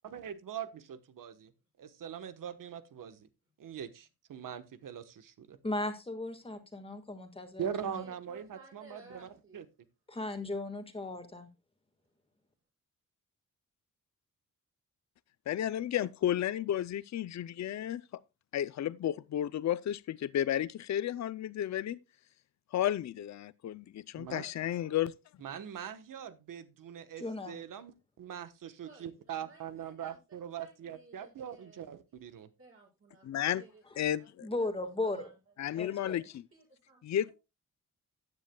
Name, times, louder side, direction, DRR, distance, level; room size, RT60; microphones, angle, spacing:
voice 1, 0.0-1.5 1.8-3.3 3.6-5.6 7.6-9.6 24.2-24.4 25.4-32.5, right 8 dB, 85° right, 1.2 m, -42 dB
voice 2, 5.6-8.1 10.1-11.5 27.2-27.6 34.4-35.3 35.7-36.2, left 2 dB, 15° left, 1.6 m, -37 dB
voice 3, 7.9-9.6 24.3-25.0 28.8-30.2 30.5-31.8 32.6-34.3 34.6-34.7 35.0-35.3 35.7-37.3, right 3 dB, 45° right, 6.7 m, -57 dB
voice 4, 15.5-18.0 18.5-22.0 22.7-25.1 33.2-33.6 34.0-34.5 35.6-36.4 37.0-37.3, left 11 dB, 60° left, 0.5 m, -32 dB
15.0 x 9.8 x 2.2 m
wide cardioid pair, 165°, 32 cm